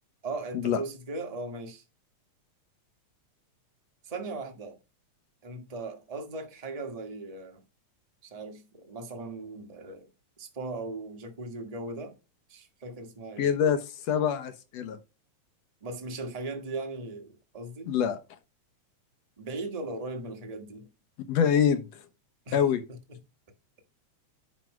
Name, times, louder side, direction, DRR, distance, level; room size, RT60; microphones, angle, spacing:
voice 1, 0.2-1.8 4.0-4.8 5.4-7.6 8.2-10.1 10.4-12.1 12.5-13.5 15.8-17.9 19.4-20.9 22.5-22.6 22.9-23.2, right 2 dB, 30° right, 0.6 m, -38 dB
voice 2, 13.4-13.8 14.1-15.0 17.9-18.2 21.3-21.8 22.5-22.8, left 8 dB, 65° left, 2.0 m, -25 dB
10.5 x 3.8 x 4.8 m
omnidirectional pair, 3.3 m